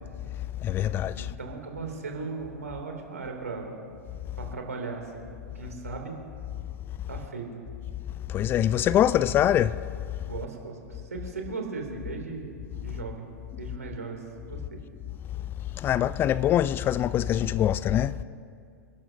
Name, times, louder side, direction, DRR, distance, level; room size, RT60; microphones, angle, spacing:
voice 1, 0.6-1.3 8.3-9.7 15.8-18.1, left 11 dB, 25° left, 0.3 m, -23 dB
voice 2, 1.2-3.7 4.4-5.3 5.5-6.2 7.1-7.6 10.3-12.5 12.8-13.3 13.6-14.2 14.5-14.8, right 4 dB, 80° right, 2.6 m, -37 dB
27.5 x 12.0 x 2.7 m
figure-of-eight pair, 95°, 8 cm